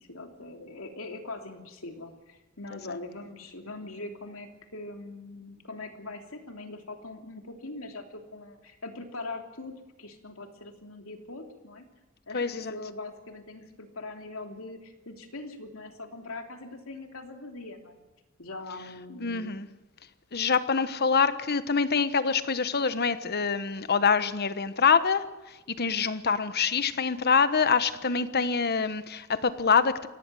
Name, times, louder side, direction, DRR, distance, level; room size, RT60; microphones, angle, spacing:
voice 1, 0.0-9.7 10.0-11.8 12.3-18.0 18.4-19.5, left 2 dB, 70° left, 3.1 m, -42 dB
voice 2, 12.3-12.7 19.2-19.7 20.3-30.1, left 5 dB, 50° left, 1.2 m, -25 dB
24.0 x 17.5 x 7.7 m
head